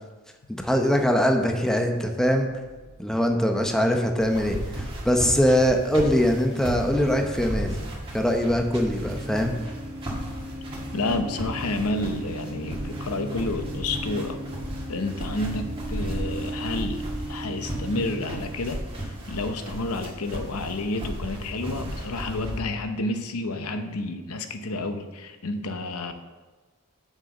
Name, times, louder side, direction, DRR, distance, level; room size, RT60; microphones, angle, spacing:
voice 1, 0.6-2.5 3.0-7.7 8.1-9.6, equal, 5° left, 3 dB, 0.8 m, -22 dB
sound 1, 2.7-18.6, right 1 dB, 50° right, 2.0 m, -39 dB
sound 2, 4.2-22.6, right 1 dB, 25° right, 2.2 m, -35 dB
voice 2, 10.9-14.4 14.9-26.1, left 2 dB, 85° left, 7 dB, 0.8 m, -30 dB
7.3 x 6.5 x 6.4 m, 1.2 s
head